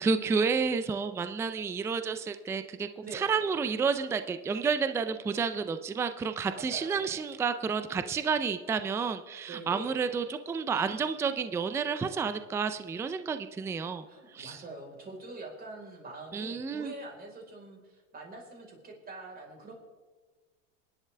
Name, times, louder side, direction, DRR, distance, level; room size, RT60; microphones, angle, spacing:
voice 1, 0.0-2.9 3.1-14.0 14.3-14.6 16.3-16.9, right 5 dB, 5° right, 10 dB, 0.4 m, -30 dB
voice 2, 6.5-7.1 9.5-10.1 10.7-11.1 14.1-19.7, right 2 dB, 25° right, 0 dB, 4.3 m, -44 dB
27.5 x 11.0 x 3.4 m, 1.3 s
supercardioid pair, 130°, 39 cm